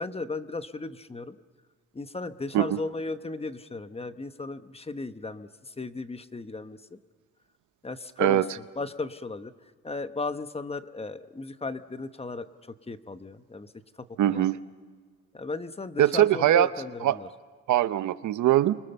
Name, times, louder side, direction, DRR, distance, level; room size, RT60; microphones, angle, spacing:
voice 1, 0.0-1.4 1.9-7.0 7.8-8.4 8.8-9.5 9.8-13.7 14.0-14.4 15.3-17.3, left 3 dB, 20° left, 11 dB, 1.0 m, -35 dB
voice 2, 14.2-14.6 16.0-16.7 17.0-17.2 17.7-18.8, right 13 dB, 75° right, 14 dB, 0.8 m, -22 dB
30.0 x 24.0 x 6.9 m, 1.5 s
cardioid pair, 90°, 30 cm